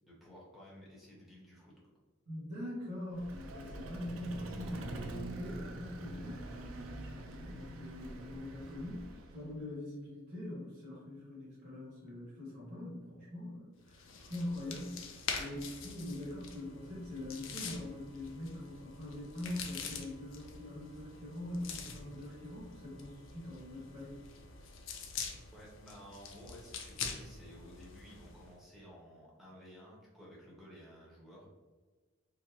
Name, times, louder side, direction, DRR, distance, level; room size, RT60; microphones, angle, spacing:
voice 1, 0.0-1.7 25.5-31.5, equal, ahead, -6 dB, 0.9 m, -54 dB
voice 2, 2.3-24.2, left 1 dB, 60° right, -11 dB, 1.3 m, -43 dB
Vehicle, 3.1-9.5, right 2 dB, 90° right, 0.4 m, -45 dB
sound 1, 13.9-28.5, left 5 dB, 70° left, 0.5 m, -45 dB
3.8 x 2.0 x 2.9 m, 1.3 s
head